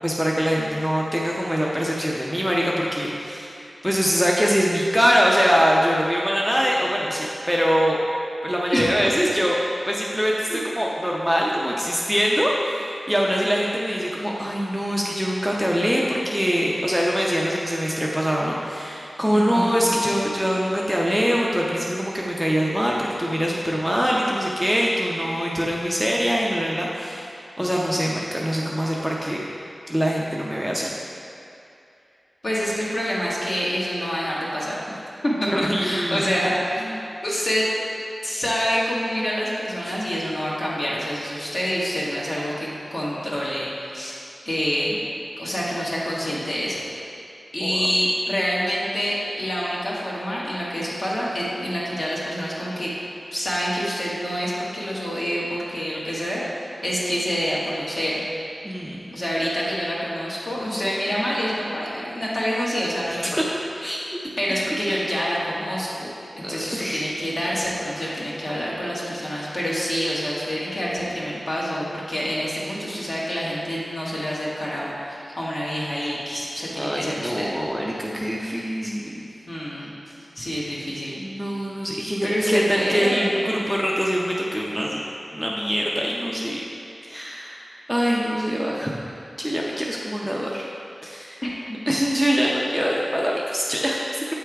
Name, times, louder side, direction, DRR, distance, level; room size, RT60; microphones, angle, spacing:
voice 1, 0.0-8.0 8.4-9.6 9.9-27.3 27.6-29.4 29.9-30.9 35.5-36.3 36.8-37.0 39.8-40.0 47.6-47.8 58.6-59.0 63.1-63.4 63.8-64.3 66.4-67.2 76.7-79.3 81.2-85.0 85.3-86.6 87.1-87.6 87.9-88.9 89.4-90.7 91.0-91.4 91.9-94.2, equal, ahead, -3 dB, 0.5 m, -23 dB
voice 2, 19.3-19.8 32.4-34.7 35.1-37.0 37.2-37.7 38.2-44.2 44.4-45.0 45.4-46.8 47.5-52.9 53.3-58.2 59.1-63.4 64.4-66.1 66.5-77.5 79.5-79.9 80.3-81.2 82.2-83.4 91.4-91.5, equal, 50° left, -6 dB, 1.4 m, -27 dB
7.6 x 3.4 x 4.6 m, 2.7 s
wide cardioid pair, 95°, 0 cm